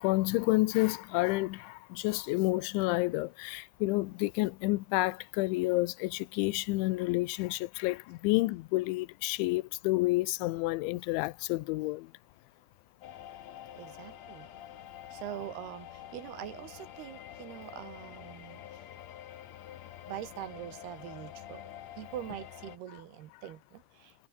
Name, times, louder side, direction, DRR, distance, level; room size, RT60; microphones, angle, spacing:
voice 1, 0.0-12.1 22.9-23.0, left 21 dB, 90° left, 3.1 m, -29 dB
sound 1, 13.0-22.8, left 11 dB, 75° left, 1.6 m, -47 dB
voice 2, 13.7-14.5 15.1-18.8 20.1-21.6 22.0-24.1, right 12 dB, 65° right, 3.3 m, -43 dB
omnidirectional pair, 5.2 m